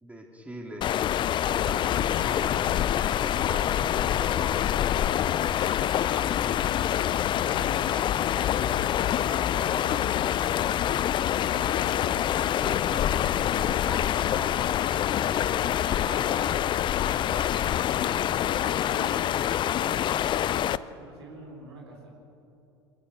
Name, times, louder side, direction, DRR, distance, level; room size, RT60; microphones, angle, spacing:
voice 1, 0.0-0.9 1.5-1.9 2.1-2.6 3.0-5.4 8.0-8.7 9.3-10.4 12.6-15.9, right 1 dB, 10° right, 0 dB, 3.5 m, -42 dB
The Vale Burn - Barrmill - North Ayrshire, 0.8-20.8, left 11 dB, 35° left, 0.5 m, -26 dB
voice 2, 1.5-1.8 6.0-8.0 9.5-10.5 10.8-12.1 12.7-13.3 15.6-16.4 16.8-17.7 17.9-19.2 19.7-22.1, right 2 dB, 75° right, 0 dB, 4.2 m, -47 dB
22.5 x 18.0 x 6.6 m, 2.8 s
hypercardioid pair, 75°, 14 cm